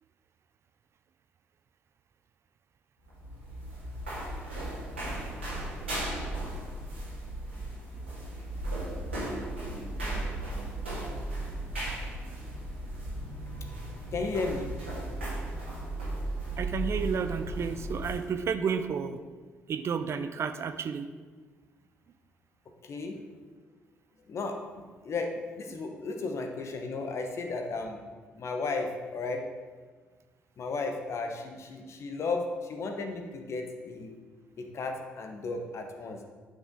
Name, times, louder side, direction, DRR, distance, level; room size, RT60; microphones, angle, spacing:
sound 1, 3.0-18.3, right 1 dB, 90° right, 2.3 m, -36 dB
voice 1, 14.1-14.7 22.8-23.2 24.3-28.0 28.3-29.4 30.6-34.1 34.6-36.2, left 3 dB, 50° left, 4 dB, 1.2 m, -34 dB
voice 2, 16.6-19.2 19.7-21.1, right 6 dB, 45° right, 9 dB, 0.5 m, -31 dB
10.0 x 6.1 x 3.9 m, 1.4 s
figure-of-eight pair, 45°, 6 cm